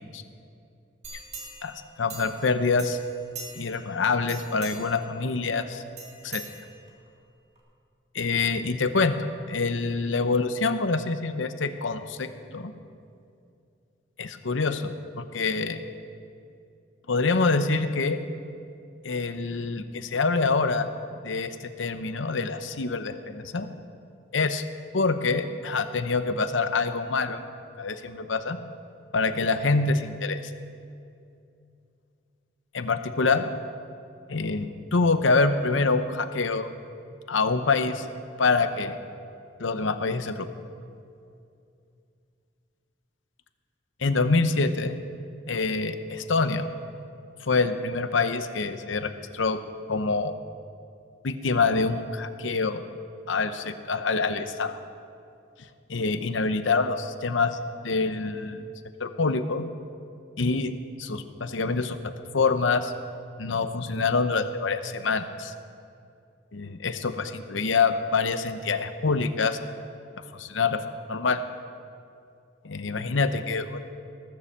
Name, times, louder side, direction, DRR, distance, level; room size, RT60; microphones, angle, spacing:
sound 1, 1.0-2.5 2.8-3.9 4.2-5.0 6.0-7.1 7.6-7.7, right 4 dB, 35° right, 2.4 m, -42 dB
voice 1, 1.6-3.0 3.6-5.8 6.2-6.4 8.1-12.7 14.2-15.8 17.1-18.2 19.0-20.9 21.2-23.7 24.3-24.6 24.9-27.4 27.8-28.6 29.1-30.5 32.7-33.5 34.3-36.7 37.3-38.1 38.4-39.0 39.6-40.5 44.0-45.0 45.5-46.6 47.4-49.6 49.9-50.4 51.2-52.8 53.3-54.8 55.9-57.6 57.8-58.6 59.0-59.7 60.4-60.7 61.0-62.0 62.3-62.9 63.4-65.5 66.5-69.6 70.4-70.8 71.1-71.4 72.6-73.8, left 4 dB, 90° left, 10 dB, 0.8 m, -26 dB
18.5 x 7.0 x 7.3 m, 2.5 s
head